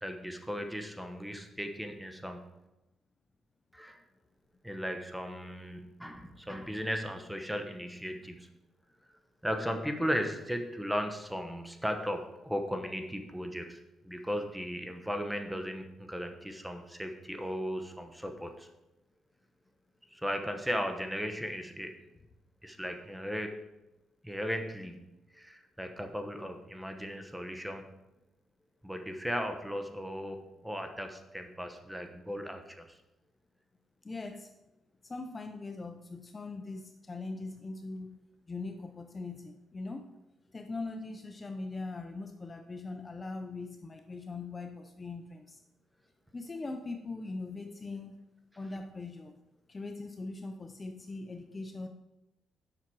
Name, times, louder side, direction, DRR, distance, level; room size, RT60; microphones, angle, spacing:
voice 1, 0.0-2.5 3.7-4.0 4.6-8.5 9.4-18.7 20.1-22.0 22.6-23.5 24.2-25.1 25.3-27.9 28.8-33.0, equal, 5° right, 5 dB, 0.9 m, -36 dB
voice 2, 34.0-34.5 35.0-38.2 38.5-40.1 40.5-45.6 46.3-48.2 48.6-49.3 49.7-51.9, left 3 dB, 25° left, 6 dB, 0.5 m, -41 dB
7.4 x 5.8 x 4.7 m, 0.94 s
cardioid pair, 100°, 0 cm